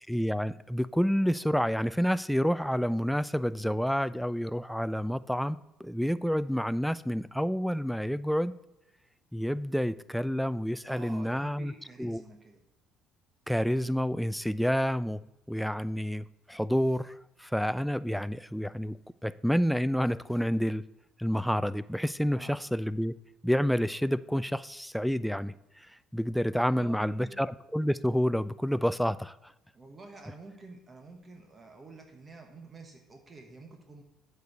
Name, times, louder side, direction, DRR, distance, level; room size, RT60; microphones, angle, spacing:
voice 1, 0.1-8.5 9.3-11.7 12.0-12.2 13.5-15.2 15.5-19.0 19.2-20.8 21.2-23.1 23.4-25.9 26.1-27.5 27.7-29.5, equal, ahead, 16 dB, 0.3 m, -29 dB
voice 2, 10.8-12.6 22.2-22.6 26.5-27.4 29.7-34.0, right 3 dB, 30° right, 3 dB, 1.4 m, -48 dB
8.2 x 4.7 x 6.7 m, 0.93 s
supercardioid pair, 75°, 0 cm